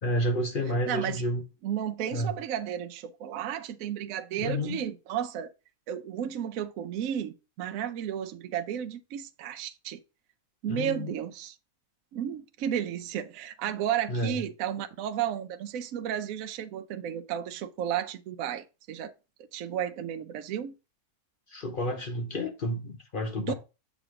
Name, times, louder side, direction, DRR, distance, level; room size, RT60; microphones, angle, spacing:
voice 1, 0.0-1.4 2.1-2.4 4.4-4.8 10.7-11.1 14.1-14.4 21.5-23.5, equal, 45° left, 0.7 m, -30 dB
voice 2, 0.9-1.2 1.6-5.5 5.9-10.0 10.6-11.5 12.1-19.1 19.5-20.7 23.5-23.6, right 10 dB, 70° right, 1.0 m, -33 dB
7.2 x 3.0 x 4.7 m
omnidirectional pair, 1.6 m